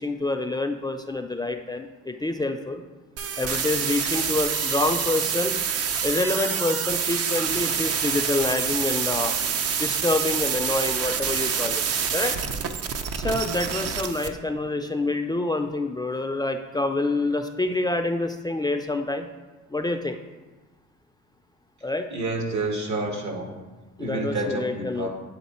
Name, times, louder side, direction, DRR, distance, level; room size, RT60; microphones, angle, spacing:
voice 1, 0.0-2.8 3.4-5.6 6.0-9.3 9.8-11.8 12.1-12.3 13.2-19.3 19.7-20.2 21.8-22.1 24.0-25.1, left 2 dB, 15° left, 5 dB, 0.3 m, -27 dB
sound 1, 3.2-14.3, right 7 dB, 55° right, 0.5 m, -27 dB
voice 2, 22.1-23.5 24.0-25.1, right 2 dB, 70° right, 2 dB, 1.5 m, -29 dB
8.4 x 3.7 x 4.2 m, 1.2 s
cardioid pair, 90°, 30 cm